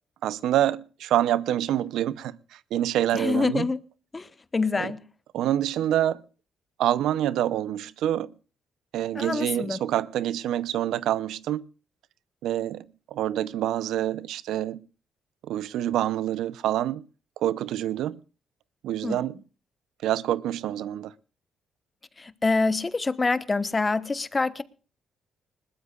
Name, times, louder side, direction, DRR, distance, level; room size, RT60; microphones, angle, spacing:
voice 1, 0.2-2.4 2.7-3.7 5.3-6.2 6.8-8.3 8.9-11.6 12.4-12.8 13.1-14.8 15.5-17.0 17.4-18.2 18.8-19.3 20.0-21.1, right 12 dB, 85° right, 0.6 m, -26 dB
voice 2, 3.1-3.8 4.1-5.0 9.1-9.8 19.0-19.2 22.2-24.6, left 3 dB, 25° left, 1.0 m, -26 dB
20.5 x 19.5 x 2.4 m
cardioid pair, 90°, 0 cm